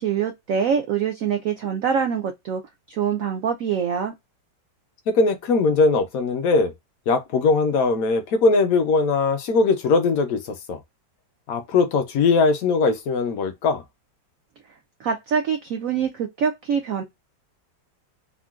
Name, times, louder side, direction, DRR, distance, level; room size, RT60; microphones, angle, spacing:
voice 1, 0.0-2.6 2.9-4.1 15.0-17.0, right 7 dB, 75° right, 0.7 m, -24 dB
voice 2, 5.1-6.7 7.1-10.8 11.5-13.8, left 4 dB, 70° left, 0.9 m, -20 dB
3.7 x 2.1 x 2.3 m
omnidirectional pair, 2.0 m